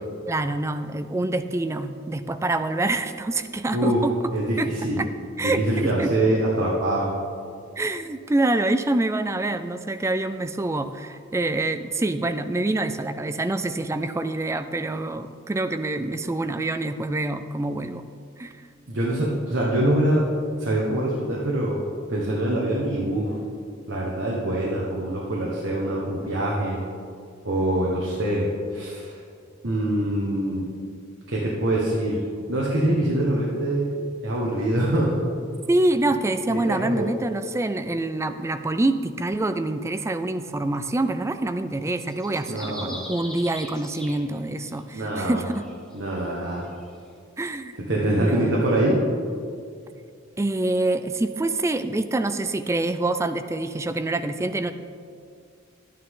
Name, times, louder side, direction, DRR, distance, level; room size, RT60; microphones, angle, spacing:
voice 1, 0.3-4.3 4.6-4.7 5.0-5.1 5.4-6.1 7.8-18.0 18.4-18.5 35.7-45.6 47.4-47.7 48.1-48.6 50.4-54.7, right 2 dB, 15° right, 10 dB, 0.3 m, -26 dB
voice 2, 4.3-5.0 5.4-7.1 18.9-20.2 20.6-21.8 22.1-23.3 23.9-26.8 27.4-29.2 29.6-30.6 31.3-33.9 34.2-35.2 36.5-37.1 42.5-43.0 44.9-45.4 45.9-46.7 47.8-49.0, right 1 dB, 65° right, -5 dB, 1.4 m, -24 dB
sound 1, 41.9-44.8 45.4-46.9, equal, 5° left, 1.3 m, -41 dB
11.5 x 9.4 x 3.7 m, 2.3 s
head